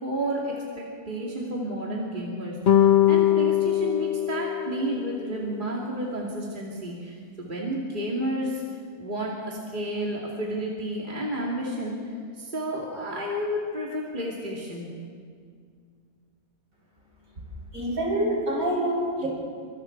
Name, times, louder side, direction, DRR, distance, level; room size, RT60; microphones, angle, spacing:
voice 1, 0.0-8.6 9.0-14.9, right 1 dB, 30° right, -3 dB, 2.8 m, -31 dB
sound 1, 2.7-5.2, left 12 dB, 40° left, 0.7 m, -21 dB
voice 2, 17.7-19.3, right 1 dB, 60° right, -4 dB, 7.8 m, -26 dB
27.5 x 25.5 x 4.7 m, 2.1 s
omnidirectional pair, 1.6 m